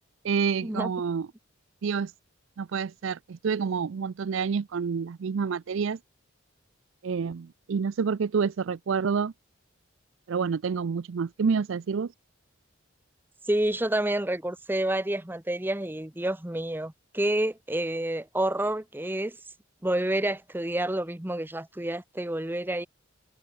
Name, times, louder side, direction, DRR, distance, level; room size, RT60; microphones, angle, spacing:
voice 1, 0.2-1.3 1.8-2.1 2.6-6.0 7.0-9.3 10.3-12.1, right 6 dB, 65° right, 0.4 m, -28 dB
voice 2, 13.4-19.4 19.8-22.9, right 1 dB, 10° right, 0.8 m, -29 dB
head